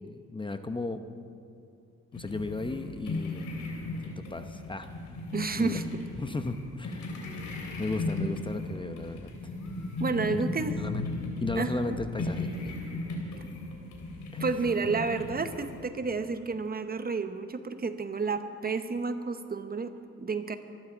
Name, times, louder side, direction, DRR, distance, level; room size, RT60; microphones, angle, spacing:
voice 1, 0.0-1.0 2.1-3.6 4.0-5.2 5.6-5.8 6.2-7.2 7.8-9.5 10.3-10.4 10.8-11.0 11.4-12.7 14.3-14.4, left 3 dB, 15° left, 8 dB, 0.8 m, -35 dB
sound 1, 2.1-15.8, left 2 dB, 75° left, 3.4 m, -36 dB
voice 2, 5.3-6.0 10.0-10.8 11.6-12.0 14.4-20.6, right 4 dB, 30° right, 9 dB, 0.9 m, -31 dB
24.0 x 12.5 x 4.5 m, 2.4 s
cardioid pair, 90°, 30 cm